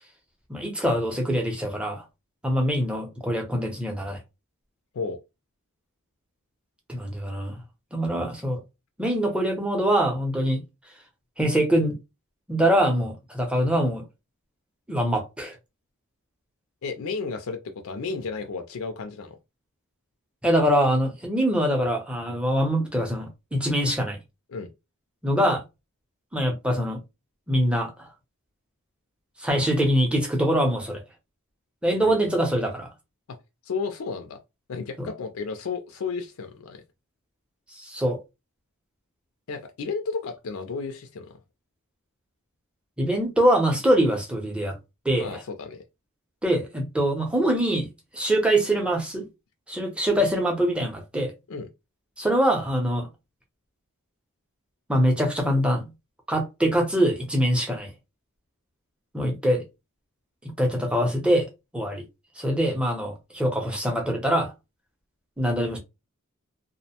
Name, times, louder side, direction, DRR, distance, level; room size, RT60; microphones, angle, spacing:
voice 1, 0.5-2.0 2.4-4.2 6.9-7.6 7.9-8.6 9.0-10.6 11.4-11.9 12.5-14.0 14.9-15.5 20.4-24.2 25.2-25.6 26.3-27.0 27.5-28.1 29.4-31.0 31.8-32.9 35.0-35.1 37.8-38.2 43.0-44.7 45.0-45.4 46.4-47.9 48.1-49.3 49.7-51.3 52.2-53.1 54.9-55.9 56.3-57.9 59.1-59.6 60.4-61.5 61.7-62.0 62.4-64.5 65.4-65.8, equal, 5° right, 0.6 m, -24 dB
voice 2, 16.8-19.4 24.5-24.7 32.0-32.3 33.3-33.4 33.6-34.4 34.7-36.8 39.5-41.4 45.2-45.8 51.5-51.7, left 4 dB, 65° left, 0.4 m, -33 dB
2.5 x 2.0 x 2.8 m
head